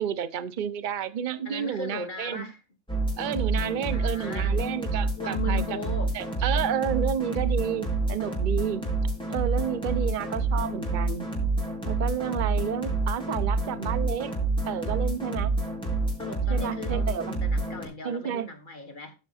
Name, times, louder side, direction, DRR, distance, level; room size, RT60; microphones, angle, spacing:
voice 1, 0.0-2.5 3.2-5.6 6.1-8.8 9.3-11.3 11.9-14.3 14.7-15.5 16.5-17.4 18.0-18.5, right 9 dB, 40° right, 0.9 m, -30 dB
voice 2, 1.4-2.6 3.9-4.7 5.2-6.1 16.2-19.1, left 2 dB, 35° left, 1.7 m, -37 dB
sound 1, 2.9-17.9, right 3 dB, 5° left, 4.2 m, -28 dB
13.5 x 5.9 x 4.2 m
omnidirectional pair, 1.4 m